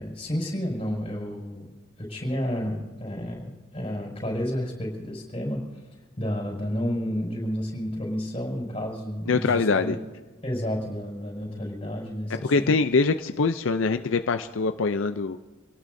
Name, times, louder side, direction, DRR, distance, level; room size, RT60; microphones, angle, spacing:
voice 1, 0.0-1.7 2.0-5.6 6.2-9.9 10.4-12.7, equal, 30° left, -2 dB, 5.7 m, -31 dB
voice 2, 9.3-10.0 12.4-15.4, left 4 dB, 80° left, 8 dB, 0.5 m, -23 dB
27.0 x 18.0 x 2.7 m, 1.3 s
head